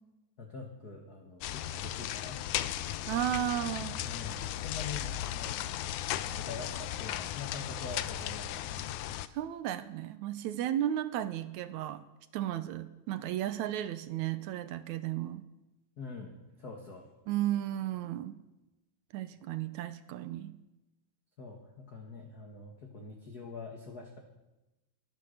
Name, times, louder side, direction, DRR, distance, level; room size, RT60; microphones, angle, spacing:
voice 1, 0.4-2.4 4.0-5.7 6.3-8.9 16.0-17.1 21.4-24.2, left 4 dB, 40° left, 1 dB, 1.4 m, -44 dB
sound 1, 1.4-9.3, left 12 dB, 75° left, 2.0 m, -36 dB
voice 2, 3.1-4.0 9.3-12.0 12.3-15.4 17.3-18.4 19.1-20.5, right 12 dB, 75° right, 12 dB, 1.9 m, -34 dB
22.0 x 9.2 x 6.6 m, 1.0 s
omnidirectional pair, 3.8 m